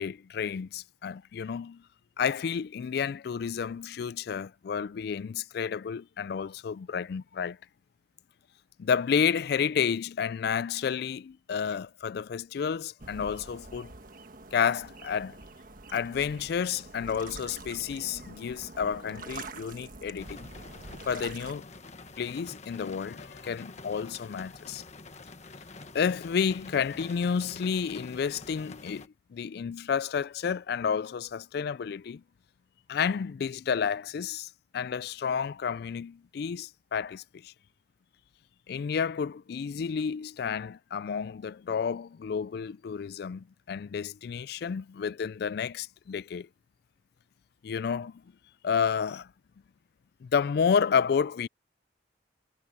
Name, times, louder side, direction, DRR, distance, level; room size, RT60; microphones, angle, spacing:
voice 1, 0.0-1.8 2.2-7.6 8.8-13.9 14.5-15.4 15.9-20.5 21.1-21.6 22.2-24.8 25.9-32.2 32.9-37.5 38.7-46.5 47.6-48.2 48.6-49.3 50.2-51.5, left 6 dB, 55° left, 0.3 m, -30 dB
sound 1, 13.0-21.5, right 3 dB, 50° right, 1.5 m, -46 dB
sound 2, 20.2-29.1, left 3 dB, 40° left, 1.3 m, -47 dB
head